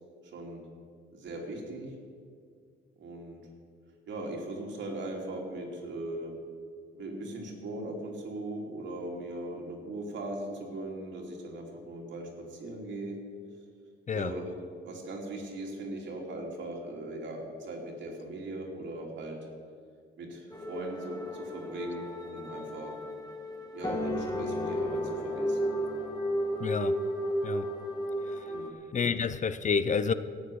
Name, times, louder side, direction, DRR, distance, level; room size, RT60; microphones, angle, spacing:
voice 1, 0.2-0.6 1.1-1.9 3.0-3.4 4.1-6.4 6.9-13.2 14.1-14.5 14.8-19.4 20.2-22.9 23.7-25.7 28.5-28.7, right 2 dB, 70° right, 0 dB, 3.2 m, -39 dB
sound 1, 20.5-28.7, equal, 20° left, 1.8 m, -33 dB
voice 2, 26.6-27.0 27.4-27.7 28.9-30.1, left 6 dB, 40° left, 13 dB, 0.6 m, -28 dB
14.0 x 8.5 x 8.0 m, 2.1 s
cardioid pair, 90°, 20 cm